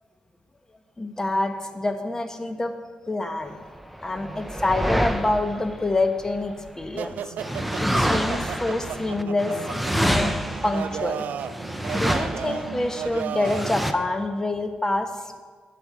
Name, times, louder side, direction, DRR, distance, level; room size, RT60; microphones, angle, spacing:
voice 1, 1.0-2.7 3.1-3.6 4.0-7.3 7.8-9.6 9.9-10.4 10.6-11.2 11.9-15.3, left 2 dB, 20° left, 7 dB, 1.1 m, -26 dB
sound 1, 3.8-6.8 7.4-13.9, equal, ahead, 0.7 m, -28 dB
sound 2, 7.0-13.8, right 8 dB, 75° right, 0.4 m, -34 dB
8.9 x 6.2 x 7.2 m, 1.5 s
cardioid pair, 70°, 3 cm